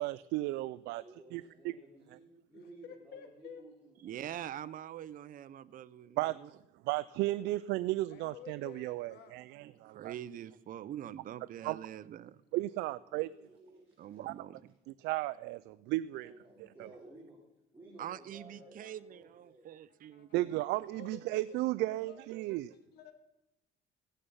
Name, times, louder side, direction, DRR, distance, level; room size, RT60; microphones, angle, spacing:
voice 1, 0.0-1.0 1.3-1.7 6.2-6.6 6.8-10.1 11.6-11.8 12.5-13.3 14.2-14.3 14.9-16.3 16.8-16.9 20.3-22.7, right 18 dB, 85° right, 16 dB, 0.4 m, -34 dB
voice 2, 0.9-4.2 13.0-14.2 16.2-17.4 17.7-19.7, right 2 dB, 15° right, -5 dB, 4.2 m, -56 dB
voice 3, 2.5-3.6 8.1-9.4 18.8-18.9 20.1-20.3 20.9-21.6 22.1-22.2 22.7-23.1, left 8 dB, 75° left, 7 dB, 2.1 m, -52 dB
voice 4, 4.0-6.5 9.6-12.4 14.0-14.6 18.0-20.6, right 11 dB, 55° right, 15 dB, 0.7 m, -44 dB
15.0 x 10.0 x 5.5 m, 0.89 s
cardioid pair, 110°, 17 cm